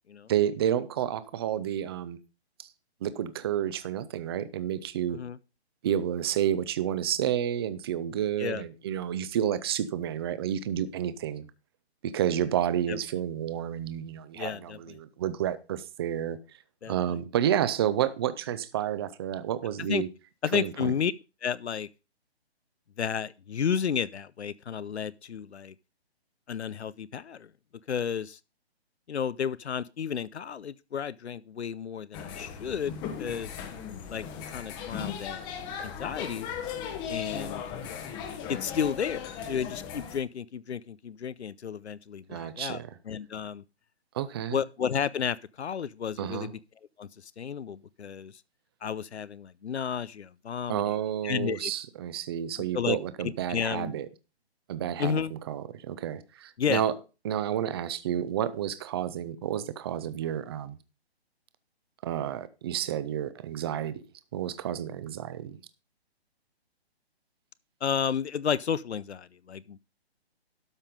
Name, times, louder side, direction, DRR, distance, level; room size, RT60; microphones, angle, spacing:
voice 1, 0.3-2.2 2.6-2.7 3.0-5.2 5.8-11.5 12.0-16.4 16.9-20.1 20.5-20.9 42.3-42.9 44.1-44.6 46.2-46.5 50.7-54.1 54.7-56.9 57.2-60.8 62.0-63.9 64.3-65.6, right 10 dB, 25° right, 0.6 m, -30 dB
voice 2, 14.4-15.0 16.8-17.2 19.8-20.0 20.4-21.1 21.4-21.9 23.0-25.7 26.5-27.5 27.9-28.4 29.1-33.5 34.1-35.4 35.8-36.5 37.1-37.6 38.5-42.8 43.1-43.6 44.4-46.6 47.0-47.1 47.4-48.3 48.8-50.8 51.2-51.7 52.7-53.0 53.2-53.9 55.0-55.3 56.6-56.8 67.8-69.8, left 7 dB, 85° left, 0.6 m, -32 dB
sound 1, 32.1-40.2, left 7 dB, 15° left, 0.9 m, -37 dB
12.5 x 5.6 x 5.1 m
hypercardioid pair, 145°, 33 cm